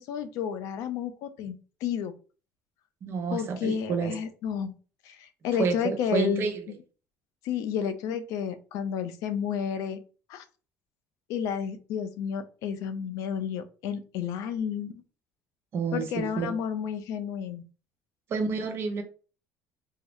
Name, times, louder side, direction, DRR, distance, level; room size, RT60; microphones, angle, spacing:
voice 1, 0.0-2.1 3.3-4.7 5.0-6.5 7.4-10.0 10.3-10.4 11.3-14.9 15.9-17.6, left 8 dB, 75° left, 0.5 m, -31 dB
voice 2, 3.0-4.1 5.6-6.6 15.7-16.5 18.3-19.0, right 5 dB, 45° right, 0.8 m, -29 dB
3.8 x 2.0 x 3.1 m
cardioid pair, 130°, 6 cm